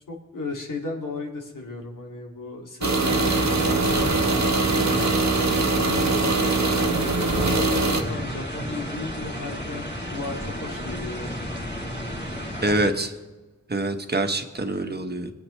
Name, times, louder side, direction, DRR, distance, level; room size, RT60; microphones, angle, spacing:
voice 1, 0.1-5.2 5.9-11.5, left 2 dB, 85° left, 0 dB, 2.3 m, -35 dB
sound 1, 2.8-8.0, right 3 dB, 60° right, 1.2 m, -22 dB
sound 2, 3.0-12.9, equal, 35° left, 2.9 m, -32 dB
voice 2, 12.6-13.1 13.7-15.3, right 2 dB, 30° right, 6 dB, 1.2 m, -25 dB
23.0 x 8.9 x 3.2 m, 1.2 s
wide cardioid pair, 70°, 31 cm